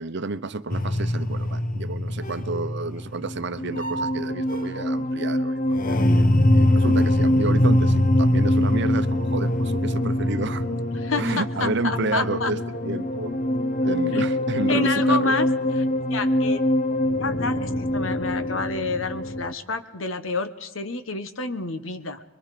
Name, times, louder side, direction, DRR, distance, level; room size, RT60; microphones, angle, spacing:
voice 1, 0.0-5.8 6.2-10.7 11.2-13.3 13.8-15.4, right 3 dB, 60° right, 0.8 m, -30 dB
sound 1, 0.7-19.5, left 1 dB, 45° left, 1.0 m, -23 dB
voice 2, 10.9-12.5 14.1-14.2 14.7-15.5 15.8-15.9 16.1-16.6 16.9-22.2, left 4 dB, 75° left, 1.3 m, -29 dB
24.5 x 23.0 x 5.0 m
head